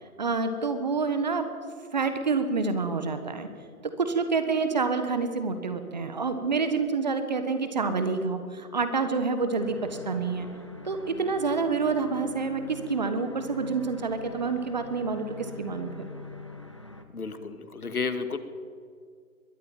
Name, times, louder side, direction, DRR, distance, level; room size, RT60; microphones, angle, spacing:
voice 1, 0.2-1.5 1.9-3.5 3.8-10.5 10.8-16.1, right 4 dB, 30° right, 9 dB, 1.4 m, -28 dB
sound 1, 9.6-17.0, left 3 dB, 20° left, 0.7 m, -44 dB
voice 2, 17.1-18.4, left 5 dB, 70° left, 9 dB, 2.4 m, -32 dB
22.0 x 14.0 x 9.0 m, 2.1 s
figure-of-eight pair, 165°, 46 cm